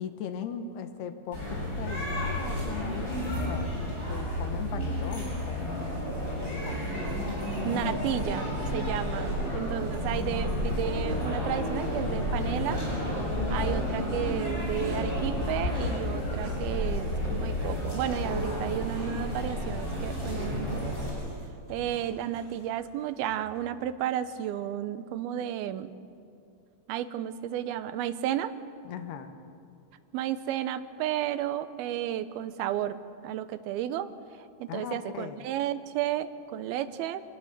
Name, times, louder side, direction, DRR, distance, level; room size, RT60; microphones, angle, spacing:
voice 1, 0.0-3.7 4.1-6.0 6.5-6.9 28.8-29.3 34.7-35.5, left 8 dB, 85° left, 8 dB, 3.3 m, -39 dB
sound 1, 1.3-21.1, left 1 dB, 20° left, 7.1 m, -31 dB
voice 2, 7.7-12.8 13.1-21.0 21.7-25.9 26.9-28.5 30.1-34.1 34.6-37.2, right 11 dB, 80° right, 12 dB, 2.7 m, -33 dB
sound 2, 13.2-13.4 14.1-15.2 15.7-16.0 16.4-16.7 17.0-17.1 17.5-17.8 18.3-23.6, right 1 dB, 25° right, 4.9 m, -49 dB
26.5 x 18.5 x 6.8 m, 2.5 s
omnidirectional pair, 4.5 m